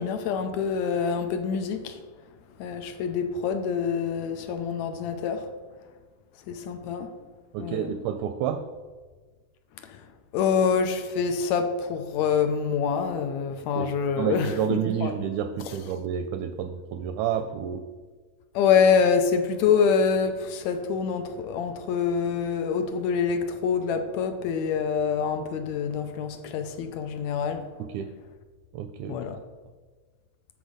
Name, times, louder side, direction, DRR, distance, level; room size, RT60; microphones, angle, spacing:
voice 1, 0.0-2.0 2.6-5.5 6.5-7.1 7.6-7.9 9.8-10.1 10.3-15.1 15.7-15.8 18.5-27.7 29.1-29.4, left 6 dB, 75° left, 7 dB, 1.8 m, -26 dB
voice 2, 7.5-8.6 13.8-13.9 14.2-17.8 27.8-28.1 28.7-29.2, right 9 dB, 80° right, 9 dB, 1.7 m, -29 dB
8.2 x 6.9 x 5.0 m, 1.4 s
omnidirectional pair, 3.7 m